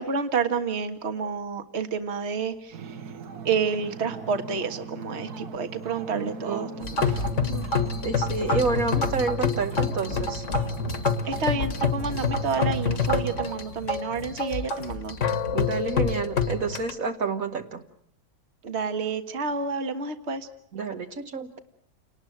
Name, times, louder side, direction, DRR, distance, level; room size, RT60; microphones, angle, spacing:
voice 1, 0.0-3.1 3.5-7.1 7.4-7.7 11.3-15.2 18.6-20.5, right 5 dB, 45° right, 8 dB, 1.7 m, -29 dB
Ocean, 2.7-13.5, right 5 dB, 80° right, 1.8 m, -40 dB
voice 2, 6.1-6.7 8.0-10.4 15.5-17.8 20.7-21.5, right 4 dB, 60° right, 5 dB, 1.7 m, -29 dB
sound 1, 6.8-16.9, left 4 dB, 50° left, 1.7 m, -27 dB
29.0 x 19.0 x 7.8 m, 0.64 s
omnidirectional pair, 1.7 m